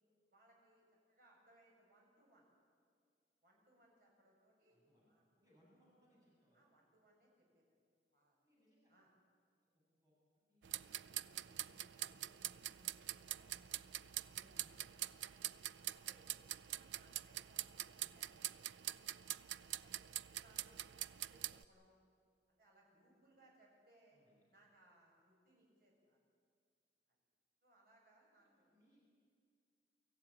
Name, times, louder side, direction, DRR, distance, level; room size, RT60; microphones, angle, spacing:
voice 1, 0.3-0.8 1.1-2.5 3.4-4.8 5.1-5.2 6.5-7.6 8.1-8.4 8.9-9.1 15.2-15.5 15.9-18.5 19.0-20.0 20.3-21.9 22.5-24.2 24.5-26.2 27.1-27.2 27.6-28.7, right 1 dB, 55° right, -2 dB, 7.1 m, -70 dB
voice 2, 4.7-6.7 8.4-8.9 9.7-10.2 10.5-15.0 18.0-18.2 24.1-24.4 28.4-29.0, equal, 20° right, -6 dB, 7.7 m, -72 dB
sound 1, 10.6-21.6, right 13 dB, 80° right, 0.5 m, -45 dB
25.0 x 14.5 x 10.0 m, 2.2 s
head